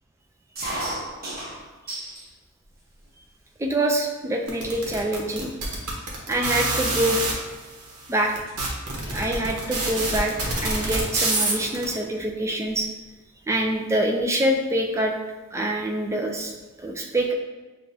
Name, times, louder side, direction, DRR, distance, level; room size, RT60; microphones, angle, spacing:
sound 1, 0.6-2.3 2.7-3.4 4.0-4.1 4.4-4.8 5.4-5.5 5.7-8.0 8.3-8.6 9.9-10.2 11.3-11.4 11.6-11.7 12.0-12.8, right 1 dB, 40° right, 1.1 m, -36 dB
voice 1, 3.6-5.5 6.3-7.2 8.1-8.3 9.1-10.3 10.6-12.9 13.5-15.1 15.5-16.5 16.8-17.3, right 1 dB, 10° right, 2 dB, 0.3 m, -25 dB
sound 2, 4.5-7.3 8.0-8.1 8.3-11.9, right 2 dB, 85° right, 1.0 m, -26 dB
6.6 x 2.5 x 2.7 m, 1.2 s
head